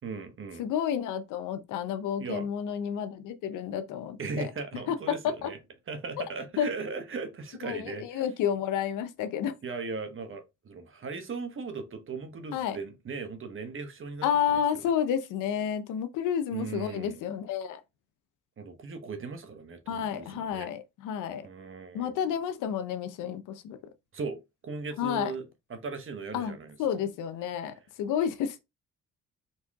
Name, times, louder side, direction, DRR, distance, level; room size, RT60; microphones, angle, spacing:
voice 1, 0.0-0.7 2.2-2.5 4.2-5.6 5.9-8.2 9.6-14.6 16.5-17.2 18.6-20.7 21.4-22.2 24.1-25.4 25.7-26.8, right 4 dB, 45° right, 1.1 m, -38 dB
voice 2, 0.6-4.5 4.9-5.0 5.2-5.5 6.2-6.3 6.6-6.7 7.6-9.5 12.5-12.8 14.2-17.8 19.9-21.5 21.9-23.8 25.0-25.3 26.3-26.5 26.8-28.6, left 8 dB, 90° left, 0.7 m, -30 dB
4.3 x 2.9 x 3.5 m
cardioid pair, 90°, 30 cm